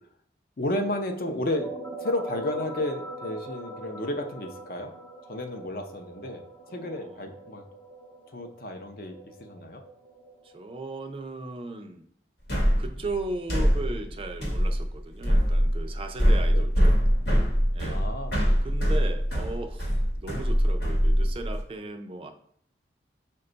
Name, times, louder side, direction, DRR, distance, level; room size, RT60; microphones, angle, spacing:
voice 1, 0.6-1.7 2.0-4.9 5.3-6.4 6.7-7.6 8.3-9.8 16.5-16.6 17.8-18.5, left 1 dB, 55° left, 5 dB, 0.5 m, -32 dB
sound 1, 1.2-10.6, right 1 dB, 15° left, 0.7 m, -42 dB
voice 2, 6.7-7.3 10.4-12.0 12.8-16.9 17.7-18.1 18.6-22.3, right 2 dB, 30° right, 6 dB, 0.3 m, -37 dB
sound 2, 12.5-21.6, equal, 70° left, 1.0 m, -23 dB
5.1 x 2.2 x 3.8 m, 0.64 s
head